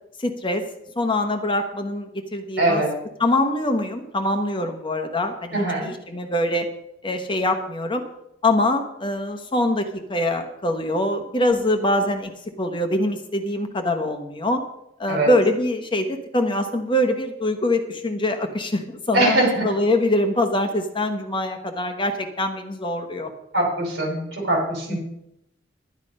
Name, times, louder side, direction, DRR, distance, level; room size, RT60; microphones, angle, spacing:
voice 1, 0.2-0.6 1.0-2.8 3.2-6.7 7.0-8.0 8.4-9.8 10.1-12.3 12.6-14.6 15.0-19.4 19.6-23.3 24.9-25.0, left 1 dB, 25° left, 6 dB, 1.0 m, -23 dB
voice 2, 2.6-2.9 5.5-5.9 15.1-15.3 19.1-19.7 23.5-25.0, right 1 dB, 55° right, 0 dB, 5.3 m, -22 dB
11.0 x 10.5 x 5.3 m, 0.82 s
head